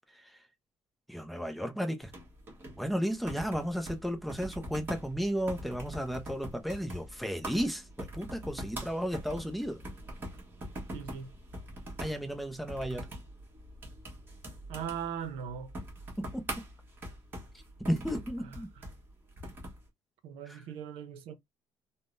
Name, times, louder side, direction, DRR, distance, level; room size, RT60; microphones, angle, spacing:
voice 1, 1.1-2.1 2.8-9.8 12.0-13.1 16.2-16.5 17.8-18.7 20.5-20.6, equal, ahead, 0.5 m, -34 dB
sound 1, 2.0-19.8, right 1 dB, 20° right, 1.2 m, -43 dB
voice 2, 10.9-11.3 14.7-15.7 18.4-18.8 20.2-21.3, right 8 dB, 85° right, 0.7 m, -39 dB
3.6 x 2.1 x 2.5 m
cardioid pair, 165°, 9 cm